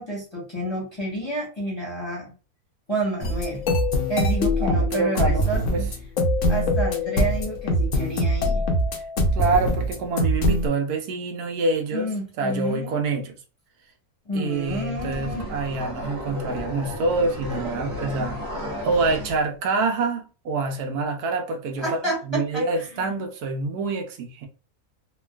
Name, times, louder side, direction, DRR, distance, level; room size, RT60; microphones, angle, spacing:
voice 1, 0.0-2.3 2.9-3.6 4.1-5.9 6.5-8.6 11.9-12.9 14.2-15.4 21.8-23.1, right 1 dB, 20° left, 0.9 m, -30 dB
sound 1, 3.2-10.7, left 1 dB, 60° left, 0.9 m, -23 dB
voice 2, 4.6-5.4 5.7-5.8 9.3-12.1 12.4-13.3 14.3-24.5, right 3 dB, 75° right, 1.1 m, -26 dB
sound 2, 14.7-19.4, equal, 40° right, 1.0 m, -33 dB
3.4 x 2.2 x 2.2 m
omnidirectional pair, 1.6 m